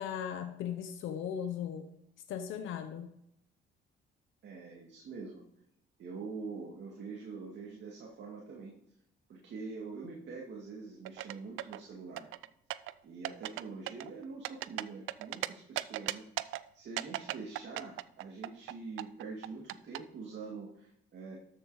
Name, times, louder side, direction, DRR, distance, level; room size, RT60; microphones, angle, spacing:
voice 1, 0.0-1.9 2.3-3.1, left 8 dB, 85° left, 7 dB, 0.9 m, -37 dB
voice 2, 4.4-5.4 6.0-8.7 9.3-12.3 13.0-21.4, right 4 dB, 65° right, -2 dB, 2.2 m, -45 dB
sound 1, 11.1-11.8 12.2-12.9 13.2-13.6 13.9-15.5 15.8-16.6 17.0-18.7 19.0-20.0, right 16 dB, 90° right, 0.5 m, -36 dB
13.0 x 6.7 x 4.9 m, 0.75 s
cardioid pair, 90°, 20 cm